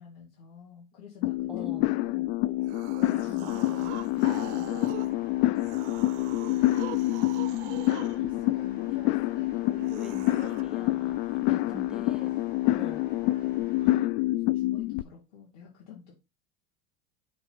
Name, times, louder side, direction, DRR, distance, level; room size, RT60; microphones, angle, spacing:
voice 1, 0.0-2.5 3.1-5.1 5.4-5.5 7.2-7.6 8.0-10.2 11.3-12.0 13.4-16.1, left 6 dB, 50° left, -5 dB, 2.5 m, -47 dB
sound 1, 1.2-15.0, left 17 dB, 75° left, 0.5 m, -27 dB
voice 2, 1.5-1.9 3.2-3.5 8.9-9.0 9.9-12.3 12.8-13.1 13.8-14.1, equal, ahead, 7 dB, 0.7 m, -45 dB
sound 2, 2.6-5.1 5.5-8.2 9.8-10.6, right 17 dB, 80° right, 0.5 m, -43 dB
sound 3, 3.5-13.9, left 4 dB, 30° left, 2.3 m, -53 dB
6.7 x 2.9 x 5.7 m, 0.27 s
supercardioid pair, 140°, 34 cm